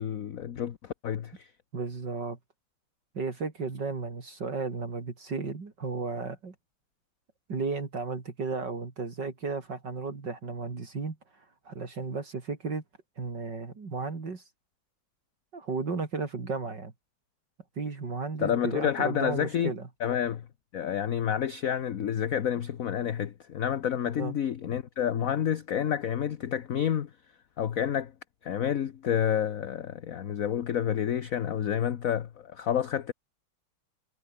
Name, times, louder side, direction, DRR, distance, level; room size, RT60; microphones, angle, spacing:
voice 1, 0.0-1.5 18.4-19.7 20.0-20.5 20.7-27.1 27.6-28.1 28.4-33.1, left 9 dB, 50° left, 1.2 m, -29 dB
voice 2, 1.7-2.4 3.1-6.5 7.5-12.8 13.2-14.4 15.5-16.9 17.8-19.9 24.2-24.3, right 4 dB, 60° right, 3.8 m, -34 dB
omnidirectional pair, 2.2 m